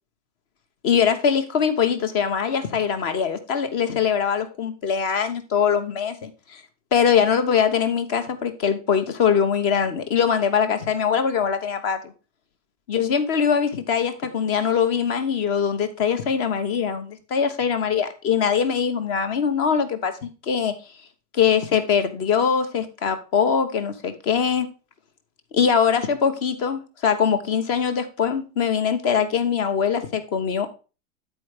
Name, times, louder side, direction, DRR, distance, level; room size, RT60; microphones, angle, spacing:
voice 1, 0.8-6.6 6.9-12.1 12.9-20.8 21.3-24.7 25.5-30.7, left 7 dB, 35° left, 9 dB, 1.1 m, -22 dB
9.3 x 4.6 x 4.9 m, 0.32 s
supercardioid pair, 165°, 41 cm